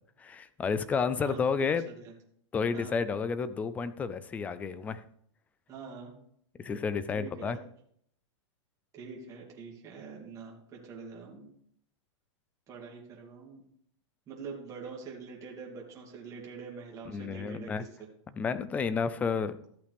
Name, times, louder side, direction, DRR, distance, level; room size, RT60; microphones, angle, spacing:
voice 1, 0.2-1.8 2.5-5.0 6.6-7.6 17.1-17.8 18.4-19.6, left 5 dB, 10° left, 14 dB, 0.4 m, -31 dB
voice 2, 1.1-2.1 2.7-3.0 5.7-6.1 7.1-7.6 8.9-11.5 12.7-13.6 14.3-18.1, right 5 dB, 20° right, -2 dB, 2.6 m, -45 dB
14.0 x 8.2 x 3.5 m, 0.67 s
supercardioid pair, 160°, 16 cm